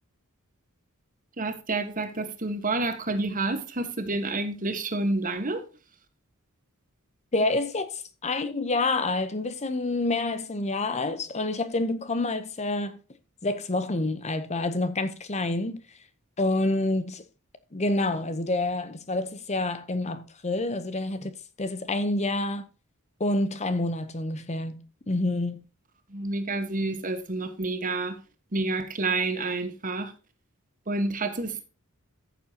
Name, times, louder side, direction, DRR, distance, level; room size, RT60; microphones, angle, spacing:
voice 1, 1.4-5.7 26.1-28.2 28.5-30.1 30.9-31.7, right 2 dB, 40° right, 1.4 m, -29 dB
voice 2, 7.3-13.0 13.4-15.8 16.4-17.2 17.7-22.7 23.2-24.8 25.1-25.6, left 2 dB, 30° left, 0.8 m, -28 dB
14.5 x 7.2 x 2.9 m
head